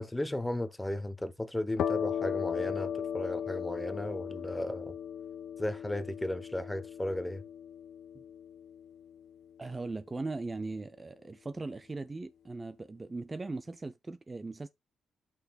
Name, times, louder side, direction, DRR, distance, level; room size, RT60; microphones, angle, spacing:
voice 1, 0.0-4.9 5.6-7.4, left 1 dB, 10° left, 0.9 m, -35 dB
sound 1, 1.8-9.2, left 8 dB, 75° left, 0.6 m, -37 dB
voice 2, 9.6-14.7, right 3 dB, 20° right, 0.5 m, -39 dB
9.7 x 6.0 x 2.3 m
cardioid pair, 115°, 0 cm